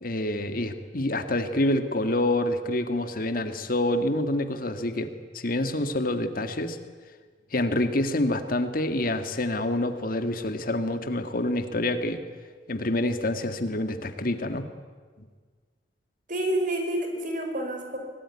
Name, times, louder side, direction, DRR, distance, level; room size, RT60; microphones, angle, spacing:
voice 1, 0.0-6.8 7.5-12.2 12.7-14.7, left 1 dB, 55° left, 8 dB, 1.8 m, -27 dB
voice 2, 16.3-18.0, right 1 dB, 50° right, 4 dB, 5.1 m, -28 dB
25.0 x 19.0 x 9.8 m, 1.6 s
head